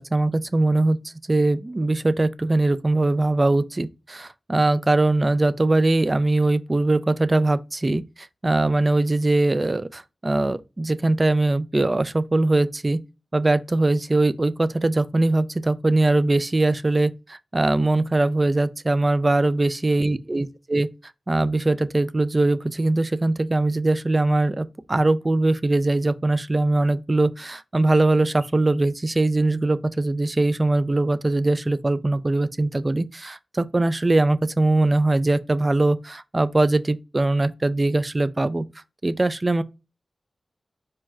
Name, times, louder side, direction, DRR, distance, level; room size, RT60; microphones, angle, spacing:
voice 1, 0.0-13.0 13.3-20.9 21.3-38.7 39.0-39.6, right 2 dB, 35° right, 0.3 m, -21 dB
4.4 x 2.3 x 3.1 m
cardioid pair, 50°, 0 cm